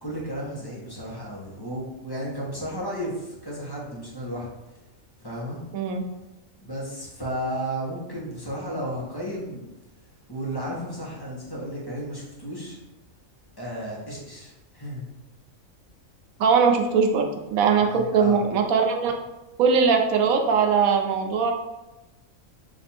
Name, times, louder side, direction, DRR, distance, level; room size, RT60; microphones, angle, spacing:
voice 1, 0.0-4.5 5.2-5.6 6.6-9.6 10.3-12.8 13.6-15.0 17.8-18.4, equal, 20° left, -5 dB, 0.9 m, -33 dB
voice 2, 16.4-19.2 19.6-21.5, right 5 dB, 85° right, 4 dB, 1.1 m, -21 dB
4.1 x 2.6 x 4.2 m, 0.99 s
omnidirectional pair, 1.4 m